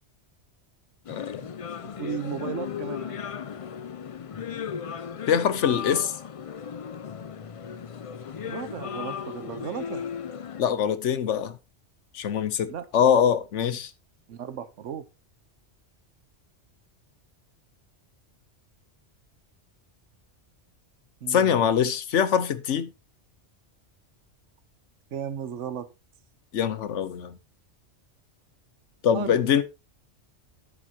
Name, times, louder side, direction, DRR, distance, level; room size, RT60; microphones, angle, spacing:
sound 1, 1.0-10.6, left 7 dB, 60° left, 0.3 m, -36 dB
voice 1, 1.1-1.4 5.3-6.2 10.6-11.6 12.1-13.9 21.3-22.9 26.5-27.4 29.0-29.6, left 8 dB, 80° left, 1.1 m, -23 dB
voice 2, 2.0-3.2 8.4-10.1 12.7-12.8 14.3-15.1 21.2-21.6 25.1-25.9 29.1-29.4, right 8 dB, 90° right, 1.2 m, -35 dB
10.5 x 7.6 x 2.8 m
omnidirectional pair, 1.2 m